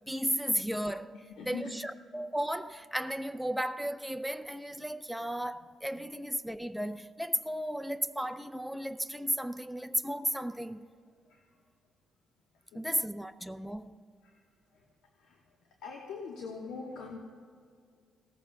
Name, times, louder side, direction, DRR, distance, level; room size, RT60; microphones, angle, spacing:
voice 1, 0.1-1.2 1.4-10.8 12.7-14.0, equal, ahead, 0.4 m, -34 dB
voice 2, 1.1-1.7 5.2-5.3 5.9-6.0 10.5-10.6 11.3-11.6 12.5-12.9 14.2-17.2, left 4 dB, 80° left, 1.2 m, -44 dB
17.5 x 14.0 x 2.3 m
cardioid pair, 90°, 0 cm